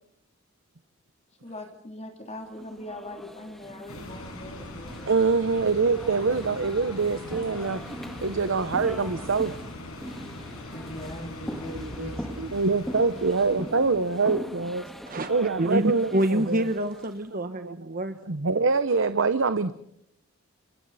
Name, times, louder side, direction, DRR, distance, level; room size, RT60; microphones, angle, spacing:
voice 1, 1.4-5.0 10.7-12.3, left 1 dB, 30° left, 3 dB, 3.0 m, -41 dB
sound 1, 2.5-17.2, equal, ahead, 1.8 m, -41 dB
sound 2, 3.9-15.1, left 1 dB, 90° left, 6.9 m, -41 dB
voice 2, 5.1-7.8 8.2-9.5 11.8-12.1 12.4-14.8 15.3-16.6 17.6-17.8 18.3-19.7, right 4 dB, 60° right, 12 dB, 0.9 m, -25 dB
voice 3, 15.6-18.2, right 1 dB, 40° right, 9 dB, 1.1 m, -27 dB
30.0 x 27.5 x 4.2 m, 0.73 s
head